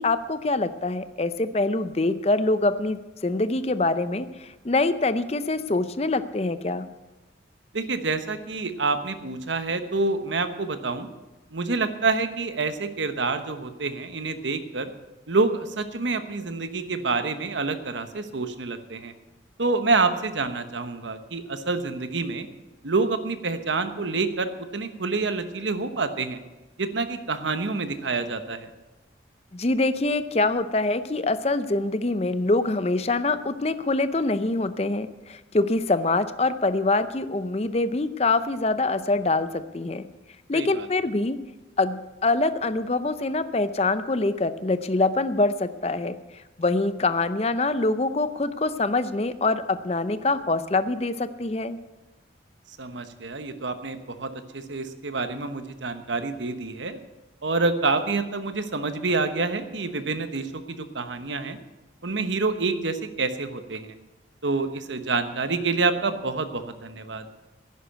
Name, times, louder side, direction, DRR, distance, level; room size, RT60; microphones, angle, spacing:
voice 1, 0.0-6.9 29.5-40.0 40.5-41.4 41.8-51.8, left 2 dB, 35° left, 12 dB, 0.6 m, -25 dB
voice 2, 7.7-11.1 11.5-14.9 15.3-19.1 19.6-22.5 22.8-26.4 26.8-28.7 40.5-40.9 52.8-57.0 57.4-61.6 62.0-64.0 64.4-67.2, right 3 dB, 85° right, 9 dB, 1.1 m, -27 dB
11.0 x 10.0 x 8.0 m, 1.1 s
head